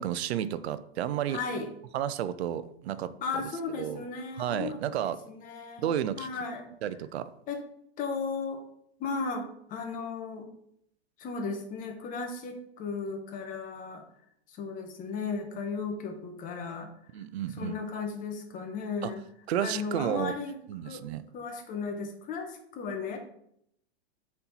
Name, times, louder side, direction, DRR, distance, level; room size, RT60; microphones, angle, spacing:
voice 1, 0.0-1.4 1.9-3.1 3.8-4.0 4.4-5.2 5.8-6.3 6.8-7.3 17.1-17.7 19.0-19.1 19.5-20.3 20.7-21.2, right 10 dB, 80° right, 14 dB, 0.6 m, -31 dB
voice 2, 1.3-1.7 3.2-6.7 7.5-7.6 8.0-8.6 9.0-10.5 11.2-14.0 14.5-16.9 17.6-19.2 19.6-20.6 20.8-21.0 21.3-23.2, left 4 dB, 25° left, 4 dB, 0.9 m, -35 dB
4.3 x 4.3 x 5.4 m, 0.72 s
supercardioid pair, 145°, 32 cm